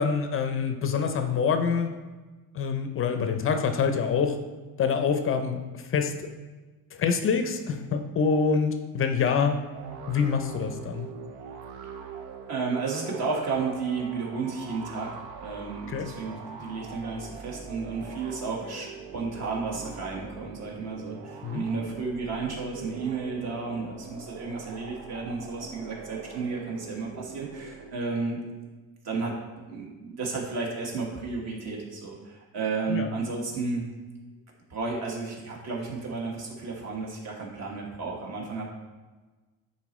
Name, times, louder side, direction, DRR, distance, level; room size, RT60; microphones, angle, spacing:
voice 1, 0.0-1.9 2.5-4.4 4.8-6.3 7.0-9.6 10.1-11.1 15.9-16.1 21.4-21.6 32.9-33.1, left 6 dB, 35° left, 6 dB, 0.5 m, -26 dB
sound 1, 9.7-28.2, right 5 dB, 85° right, 0.8 m, -43 dB
voice 2, 12.5-28.4 29.0-29.4 29.7-33.8 34.7-38.6, right 4 dB, 45° right, -1 dB, 1.4 m, -32 dB
9.6 x 4.2 x 3.1 m, 1.3 s
cardioid pair, 155°, 37 cm